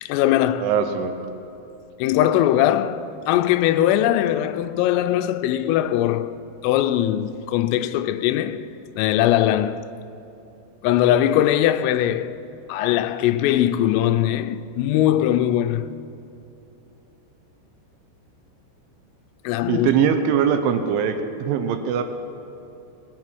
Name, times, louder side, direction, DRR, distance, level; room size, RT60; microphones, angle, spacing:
voice 1, 0.0-0.8 2.0-6.3 6.6-8.7 9.0-9.9 10.8-12.4 12.7-15.9 19.4-19.9, left 12 dB, 90° left, 3.2 m, -20 dB
voice 2, 0.6-1.1 19.7-22.0, right 8 dB, 80° right, 3.0 m, -21 dB
19.0 x 10.0 x 6.1 m
omnidirectional pair, 5.8 m